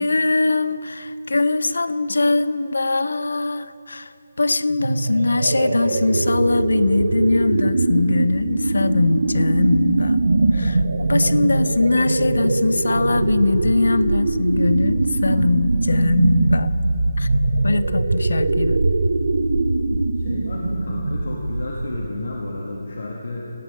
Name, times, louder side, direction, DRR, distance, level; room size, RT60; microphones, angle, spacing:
voice 1, 0.0-10.2 10.5-16.7 17.2-17.3 17.6-18.8, left 3 dB, 90° left, 16 dB, 0.4 m, -21 dB
sound 1, 4.7-22.3, right 2 dB, 85° right, 0.6 m, -21 dB
voice 2, 20.2-23.5, left 2 dB, 65° left, -3 dB, 1.4 m, -31 dB
16.5 x 8.1 x 5.2 m, 3.0 s
hypercardioid pair, 175°, 0 cm